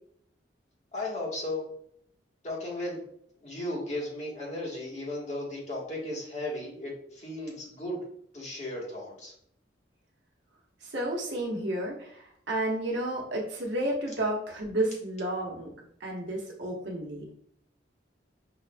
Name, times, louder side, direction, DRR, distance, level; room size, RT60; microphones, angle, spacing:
voice 1, 0.9-1.6 2.4-3.0 3.4-8.0 8.3-9.3, left 1 dB, 40° left, -4 dB, 1.3 m, -35 dB
voice 2, 10.8-15.7 16.0-17.3, right 1 dB, 80° right, -1 dB, 1.0 m, -31 dB
5.8 x 2.5 x 2.2 m, 0.68 s
head